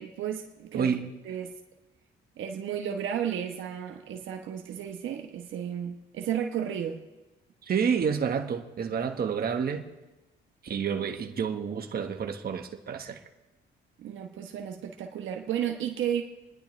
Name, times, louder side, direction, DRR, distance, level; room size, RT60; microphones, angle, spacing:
voice 1, 0.0-0.9 1.2-1.5 2.4-7.0 14.0-16.2, right 9 dB, 75° right, 3 dB, 1.1 m, -33 dB
voice 2, 0.7-1.1 7.6-9.9 10.6-13.2, right 7 dB, 50° right, 4 dB, 1.4 m, -29 dB
28.5 x 10.5 x 3.3 m, 1.1 s
cardioid pair, 90°, 20 cm